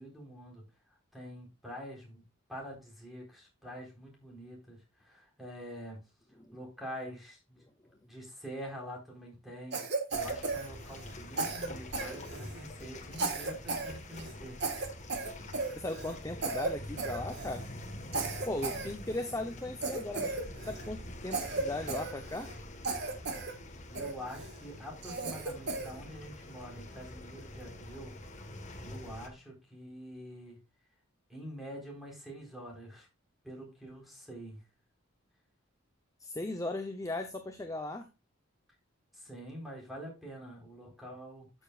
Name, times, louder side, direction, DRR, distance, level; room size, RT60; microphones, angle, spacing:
voice 1, 0.0-2.2 2.5-6.1 6.5-7.6 8.0-14.8 23.9-28.3 28.8-30.6 31.3-33.1 33.4-34.7 39.1-41.6, equal, ahead, -1 dB, 4.1 m, -46 dB
Cough, 9.7-11.1 11.4-12.6 13.1-13.9 14.2-14.3 14.6-16.2 16.4-16.7 17.0-17.6 18.1-19.3 19.8-20.9 21.3-22.6 22.8-23.5 24.0-24.5 25.0-25.9, right 3 dB, 55° right, 1.6 m, -35 dB
sound 1, 10.1-29.3, left 1 dB, 35° left, 1.5 m, -46 dB
voice 2, 15.7-17.6 18.5-20.3 20.6-22.5 36.2-38.1, left 2 dB, 15° left, 6 dB, 0.7 m, -37 dB
13.0 x 6.9 x 2.4 m, 0.27 s
head